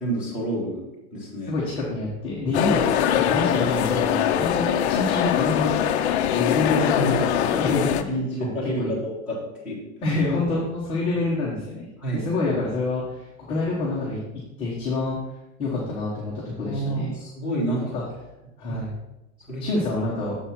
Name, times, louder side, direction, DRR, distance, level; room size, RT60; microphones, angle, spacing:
voice 1, 0.0-1.5 6.7-7.6 8.1-9.8 12.0-12.3 16.6-18.0 18.6-18.8 19.5-19.6, right 1 dB, 5° right, -6 dB, 1.7 m, -29 dB
voice 2, 1.5-5.8 6.4-8.5 8.8-8.9 10.0-14.2 14.6-15.2 15.6-17.2 17.7-18.0 18.6-18.9 19.6-20.4, left 2 dB, 15° left, -6 dB, 0.9 m, -27 dB
sound 1, 2.5-8.0, left 10 dB, 50° left, 0.5 m, -22 dB
7.2 x 4.2 x 5.8 m, 0.95 s
supercardioid pair, 175°, 42 cm